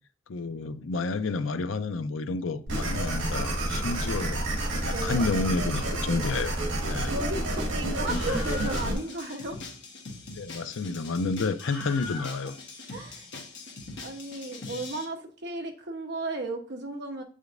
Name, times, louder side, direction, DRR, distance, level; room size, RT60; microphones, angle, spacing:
voice 1, 0.3-4.4 4.8-6.5 6.8-7.1 10.4-12.6, left 3 dB, 85° left, 0.5 m, -30 dB
sound 1, 2.7-8.9, right 1 dB, 75° right, 2.2 m, -29 dB
voice 2, 4.9-5.3 6.9-9.6 12.9-13.3 14.0-17.2, right 2 dB, 60° right, 1.0 m, -35 dB
Screaming, 8.1-15.0, left 3 dB, 65° left, 1.2 m, -41 dB
8.1 x 5.0 x 2.6 m
head